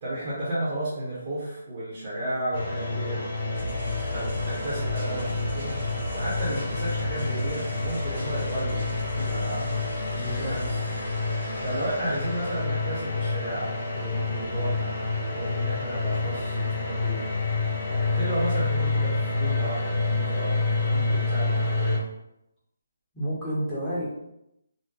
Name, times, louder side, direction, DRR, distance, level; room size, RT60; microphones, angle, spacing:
voice 1, 0.0-3.2 4.0-5.8 6.1-9.7 10.3-10.7 11.6-14.9 15.3-17.3 17.9-22.0, right 1 dB, 30° right, -9 dB, 0.9 m, -33 dB
sound 1, 2.5-22.0, left 3 dB, 30° left, 1.0 m, -28 dB
sound 2, 3.5-12.6, left 2 dB, 55° right, 1.3 m, -37 dB
voice 2, 10.1-10.5 23.1-24.0, equal, 10° left, -10 dB, 0.9 m, -30 dB
2.7 x 2.2 x 3.6 m, 0.83 s
hypercardioid pair, 170°, 0 cm